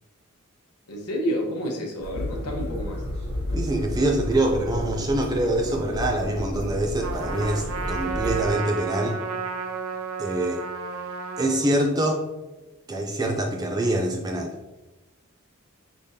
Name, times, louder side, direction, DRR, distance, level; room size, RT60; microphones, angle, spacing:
voice 1, 0.9-3.0, equal, 85° left, -1 dB, 1.0 m, -29 dB
sound 1, 2.0-8.5, left 1 dB, 25° left, 1.2 m, -32 dB
voice 2, 3.5-9.2 10.2-10.6 11.4-12.2 12.9-14.5, right 1 dB, 15° right, 3 dB, 0.3 m, -25 dB
Trumpet, 7.0-11.7, right 5 dB, 75° right, 0.5 m, -32 dB
5.0 x 3.4 x 2.7 m, 1.1 s
head